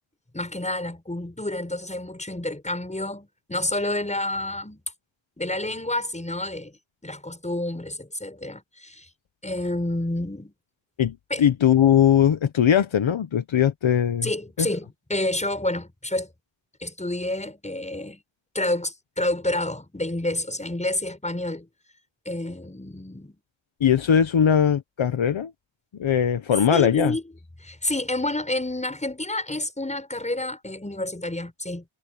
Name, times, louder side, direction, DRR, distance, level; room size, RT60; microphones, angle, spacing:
voice 1, 0.3-4.8 5.4-9.1 9.4-10.5 11.3-11.5 14.2-16.3 16.8-18.2 18.5-21.7 22.3-23.4 26.7-27.2 27.6-31.9, left 1 dB, 15° left, 7.1 m, -29 dB
voice 2, 11.0-14.3 14.6-14.7 23.8-25.5 26.0-27.1, left 9 dB, 70° left, 1.2 m, -20 dB
wide cardioid pair, 135°, 48 cm